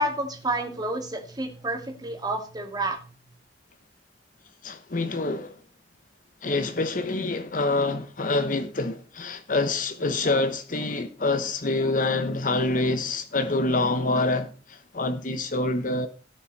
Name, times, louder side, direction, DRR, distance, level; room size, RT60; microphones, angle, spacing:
voice 1, 0.0-3.1, right 1 dB, 25° right, 2.2 m, -29 dB
voice 2, 4.6-5.6 6.4-16.1, left 2 dB, 50° left, 0.9 m, -26 dB
17.5 x 5.9 x 4.1 m
head